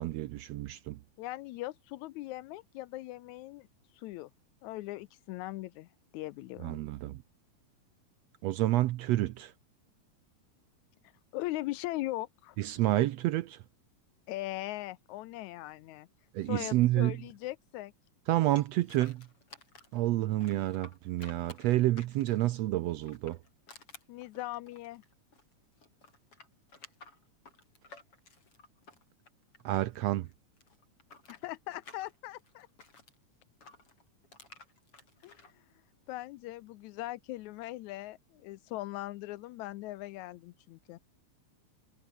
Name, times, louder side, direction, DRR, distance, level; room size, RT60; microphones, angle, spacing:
voice 1, 0.0-1.0 6.6-7.2 8.4-9.5 12.6-13.6 16.3-17.2 18.3-19.3 19.9-23.4 29.6-30.3, right 15 dB, 75° right, 1.6 m, -29 dB
voice 2, 1.2-3.7 4.0-4.3 4.6-5.9 6.1-6.8 11.3-12.6 14.3-16.1 16.4-17.9 24.1-25.0 31.3-32.7 35.2-35.4 36.1-41.0, left 17 dB, 80° left, 1.9 m, -40 dB
sound 1, 18.6-20.0 20.4-22.5 23.0-25.5 25.8-30.0 30.2-33.1 33.6-35.5, left 3 dB, 45° left, 6.5 m, -54 dB
omnidirectional pair, 3.6 m